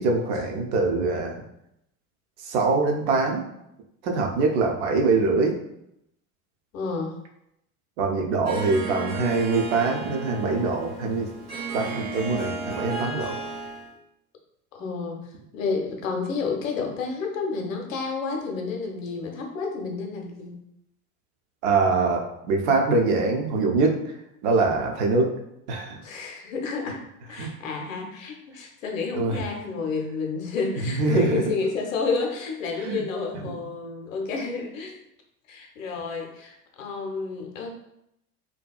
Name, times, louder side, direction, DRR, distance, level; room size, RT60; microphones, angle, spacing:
voice 1, 0.0-1.4 2.4-3.4 4.0-5.6 8.0-11.3 11.7-13.4 21.6-23.9 24.4-25.3 25.7-26.0 27.4-27.5 29.1-29.4 30.9-31.4 32.9-33.0 33.4-33.5, right 3 dB, 50° right, 2 dB, 0.6 m, -23 dB
voice 2, 6.7-7.2 14.7-20.6 26.0-35.0 35.5-37.8, left 4 dB, 60° left, 1 dB, 0.7 m, -30 dB
Harp, 8.4-13.9, right 3 dB, 85° right, 0.9 m, -33 dB
2.7 x 2.2 x 2.3 m, 0.80 s
figure-of-eight pair, 75°, 45 cm